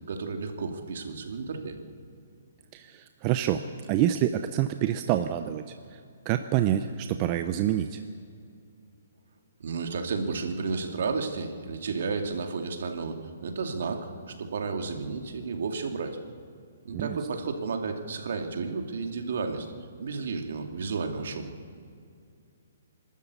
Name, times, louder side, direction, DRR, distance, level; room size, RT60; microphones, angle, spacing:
voice 1, 0.1-1.8 9.6-16.2 16.8-19.7 20.0-21.5, right 4 dB, 65° right, 5 dB, 2.5 m, -32 dB
voice 2, 2.7-5.6 5.9-6.0 6.3-8.0 16.9-17.2, right 11 dB, 25° right, 8 dB, 0.6 m, -27 dB
25.5 x 13.0 x 8.4 m, 2.3 s
hypercardioid pair, 165°, 0 cm